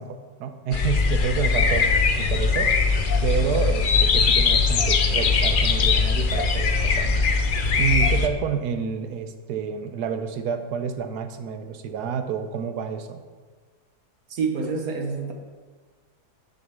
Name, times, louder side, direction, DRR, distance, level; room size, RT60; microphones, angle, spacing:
voice 1, 0.0-1.8 2.2-2.7 3.2-7.1 7.8-13.2, right 7 dB, 85° right, 8 dB, 1.3 m, -29 dB
sound 1, 0.7-8.3, left 4 dB, 60° left, 0.5 m, -21 dB
voice 2, 14.3-15.3, right 5 dB, 65° right, 3 dB, 1.6 m, -28 dB
6.9 x 6.4 x 7.0 m, 1.5 s
omnidirectional pair, 1.7 m